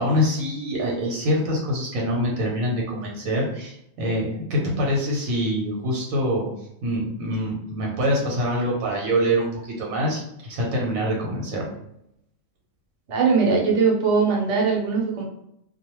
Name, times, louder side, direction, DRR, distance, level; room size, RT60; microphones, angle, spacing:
voice 1, 0.0-6.5 6.8-11.7, equal, 85° right, -2 dB, 1.2 m, -25 dB
voice 2, 13.1-15.2, right 5 dB, 65° right, -1 dB, 1.0 m, -20 dB
2.3 x 2.3 x 2.9 m, 0.77 s
omnidirectional pair, 1.4 m